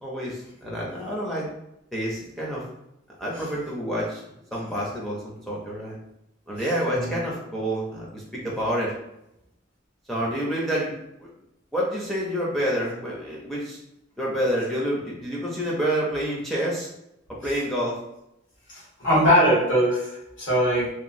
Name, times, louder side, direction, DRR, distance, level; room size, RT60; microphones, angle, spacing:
voice 1, 0.0-1.5 1.9-2.6 3.2-4.2 4.5-6.0 6.5-8.9 10.1-11.3 11.7-13.8 14.2-16.9 17.4-18.0, equal, ahead, -5 dB, 0.5 m, -28 dB
voice 2, 19.0-20.9, equal, 65° left, -6 dB, 1.3 m, -21 dB
3.0 x 2.2 x 2.6 m, 0.84 s
head